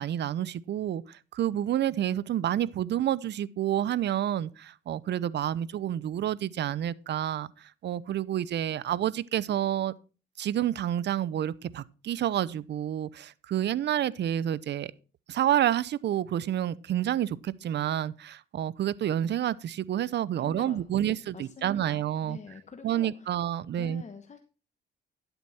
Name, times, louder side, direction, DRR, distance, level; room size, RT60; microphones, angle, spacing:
voice 1, 0.0-9.9 10.4-14.9 15.3-22.4 22.8-24.0, right 11 dB, 60° right, 0.6 m, -29 dB
voice 2, 20.4-23.4 23.8-24.4, left 5 dB, 35° left, 1.1 m, -47 dB
11.5 x 8.0 x 4.2 m
cardioid pair, 90°, 20 cm